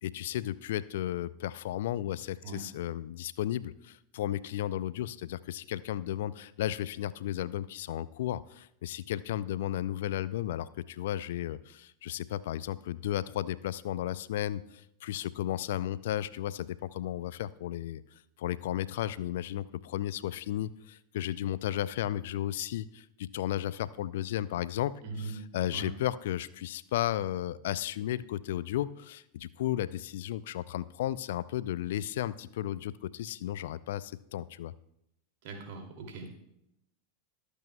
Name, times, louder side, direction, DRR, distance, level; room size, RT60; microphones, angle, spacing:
voice 1, 0.0-18.0 18.4-24.9 25.5-34.7, left 12 dB, 65° left, 18 dB, 0.3 m, -34 dB
voice 2, 25.0-25.4 25.7-25.9 35.4-36.3, right 4 dB, 55° right, 2 dB, 2.6 m, -40 dB
22.0 x 8.2 x 2.3 m, 0.78 s
figure-of-eight pair, 90°, 0 cm